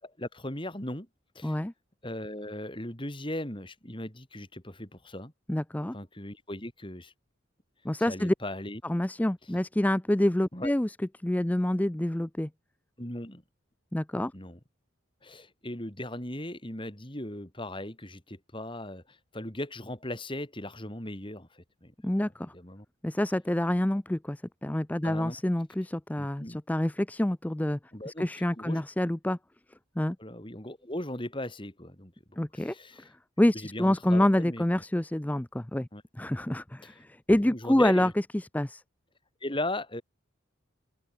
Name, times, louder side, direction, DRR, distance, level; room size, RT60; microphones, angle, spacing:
voice 1, 0.0-1.1 1.3-1.6 2.0-5.3 5.9-7.1 8.1-8.8 10.5-10.7 13.0-13.4 14.3-14.6 15.2-21.9 22.5-22.9 25.0-25.4 26.2-26.6 27.9-28.3 28.6-28.8 30.2-32.1 32.5-33.1 33.6-34.6 35.9-36.0 36.8-36.9 37.4-38.1 39.4-40.0, left 1 dB, 25° left, 4.3 m, -38 dB
voice 2, 1.4-1.7 5.5-6.0 7.8-8.3 8.8-11.0 11.2-12.5 13.9-14.3 22.0-22.5 23.0-27.8 28.1-29.4 30.0-30.2 32.4-32.7 33.4-35.9 36.1-38.8, left 1 dB, 10° left, 0.4 m, -27 dB
open air
head